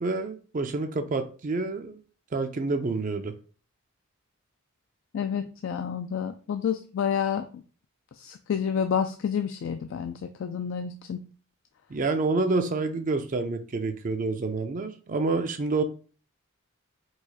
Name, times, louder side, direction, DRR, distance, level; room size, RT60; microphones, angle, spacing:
voice 1, 0.0-2.0 2.3-3.4 11.9-15.8, right 3 dB, 40° right, 0.4 m, -28 dB
voice 2, 5.1-7.6 8.2-11.2, left 7 dB, 60° left, 0.3 m, -29 dB
4.7 x 2.4 x 4.0 m
head